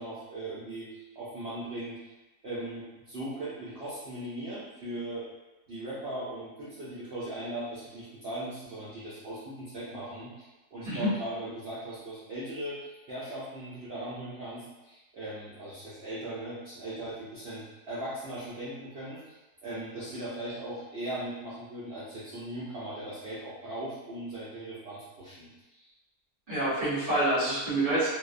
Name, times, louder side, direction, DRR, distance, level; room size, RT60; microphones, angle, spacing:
voice 1, 0.0-2.0 2.4-5.3 5.7-19.2 19.6-25.9, right 1 dB, 65° right, -11 dB, 0.6 m, -39 dB
voice 2, 26.5-28.1, right 1 dB, 40° right, -9 dB, 0.8 m, -27 dB
2.6 x 2.1 x 2.4 m, 1.1 s
omnidirectional pair, 1.7 m